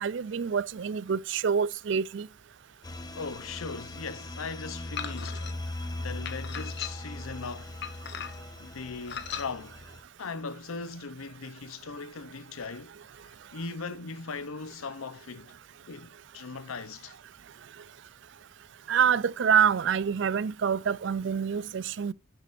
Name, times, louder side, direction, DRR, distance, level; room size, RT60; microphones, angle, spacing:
voice 1, 0.0-2.3 18.9-22.1, right 7 dB, 60° right, 0.4 m, -26 dB
sound 1, 2.8-10.0, left 2 dB, 20° left, 0.7 m, -39 dB
voice 2, 3.1-7.8 8.6-9.8 10.2-13.0 13.5-15.6 15.9-17.2, left 4 dB, 85° left, 0.8 m, -39 dB
sound 2, 5.0-5.5 6.3-7.2 7.8-8.5 9.1-9.5, left 7 dB, 55° left, 1.0 m, -38 dB
10.0 x 8.2 x 2.6 m
head